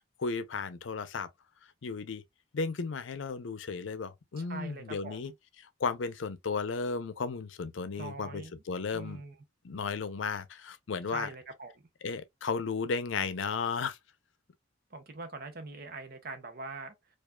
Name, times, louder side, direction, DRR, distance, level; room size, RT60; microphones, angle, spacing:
voice 1, 0.2-1.3 1.8-2.2 2.5-5.3 5.8-9.2 9.6-11.3 12.0-14.0, left 5 dB, 75° left, 0.5 m, -34 dB
voice 2, 4.4-5.3 7.9-8.5 8.9-9.3 11.1-11.7 14.9-16.9, right 3 dB, 50° right, 0.8 m, -43 dB
4.6 x 2.4 x 2.2 m
head